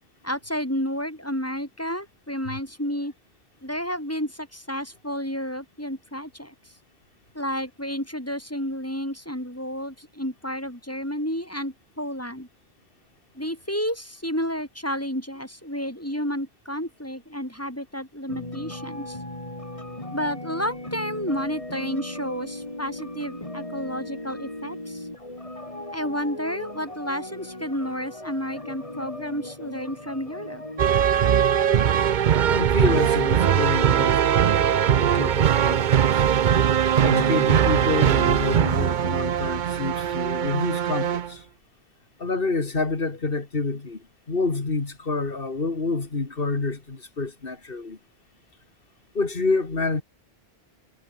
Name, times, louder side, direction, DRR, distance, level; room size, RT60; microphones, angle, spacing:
voice 1, 0.2-3.1 3.6-6.5 7.3-12.5 13.3-19.2 20.1-25.1 25.9-30.6, equal, 15° left, 4.8 m, -31 dB
sound 1, 18.3-32.0, left 1 dB, 30° left, 4.0 m, -38 dB
sound 2, 30.8-41.3, right 9 dB, 55° right, 0.7 m, -21 dB
voice 2, 32.5-34.4 34.9-36.2 37.0-41.5 42.2-48.0 49.1-50.0, left 3 dB, 60° left, 2.5 m, -28 dB
omnidirectional pair, 1.1 m